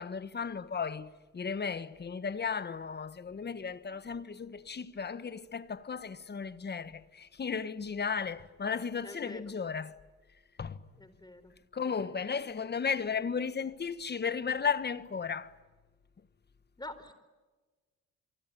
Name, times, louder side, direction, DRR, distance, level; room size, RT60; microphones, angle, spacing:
voice 1, 0.0-10.0 10.6-10.8 11.7-15.5, left 6 dB, 35° left, 1.5 m, -35 dB
voice 2, 9.0-9.4 11.0-11.5 11.9-12.2 16.8-17.1, left 2 dB, 15° left, 4.3 m, -47 dB
27.0 x 24.0 x 9.1 m
cardioid pair, 90°, 30 cm